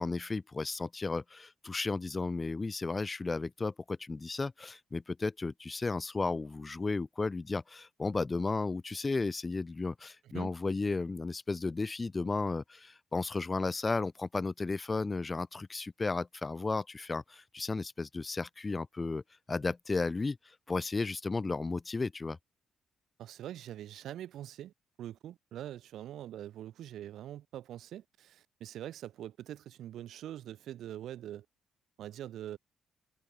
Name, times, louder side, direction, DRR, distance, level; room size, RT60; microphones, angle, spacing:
voice 1, 0.0-19.2 19.5-22.4, left 3 dB, 25° left, 0.3 m, -34 dB
voice 2, 23.2-24.7 25.0-31.4 32.0-32.6, right 12 dB, 75° right, 1.3 m, -43 dB
cardioid pair, 90°, 0 cm